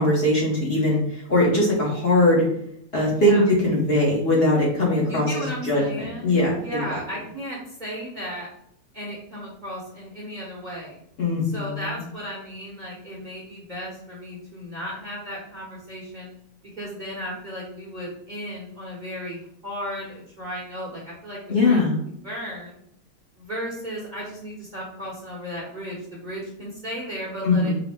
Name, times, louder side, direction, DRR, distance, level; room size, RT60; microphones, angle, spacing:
voice 1, 0.0-2.4 2.9-7.0 11.2-12.0 21.5-22.0 27.4-27.7, left 1 dB, 45° left, -3 dB, 1.0 m, -21 dB
voice 2, 3.1-3.4 5.1-8.5 8.9-11.0 11.4-16.3 16.8-21.8 22.2-22.8 23.4-27.7, equal, 35° right, -5 dB, 0.8 m, -35 dB
4.9 x 2.1 x 3.4 m, 0.69 s
omnidirectional pair, 1.6 m